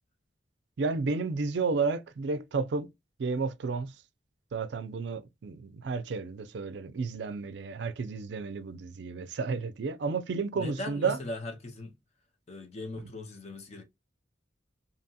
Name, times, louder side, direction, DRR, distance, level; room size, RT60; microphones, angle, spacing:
voice 1, 0.8-2.9 3.2-3.9 4.5-11.2, right 4 dB, 70° right, 0.4 m, -32 dB
voice 2, 10.6-11.9 12.5-13.8, left 2 dB, 35° left, 0.6 m, -39 dB
2.8 x 2.7 x 2.2 m
head